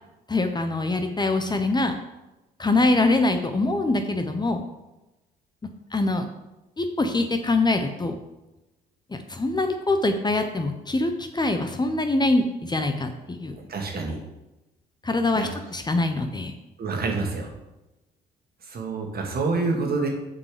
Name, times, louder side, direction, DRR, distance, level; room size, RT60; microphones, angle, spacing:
voice 1, 0.3-2.0 2.6-4.6 5.9-6.3 6.8-8.2 9.1-13.5 15.0-16.5, left 2 dB, 20° left, 6 dB, 0.9 m, -24 dB
voice 2, 13.7-14.2 15.3-15.5 16.8-17.5 18.7-20.1, right 3 dB, 50° right, 2 dB, 1.9 m, -27 dB
6.8 x 5.3 x 5.0 m, 1.0 s
hypercardioid pair, 55°, 20 cm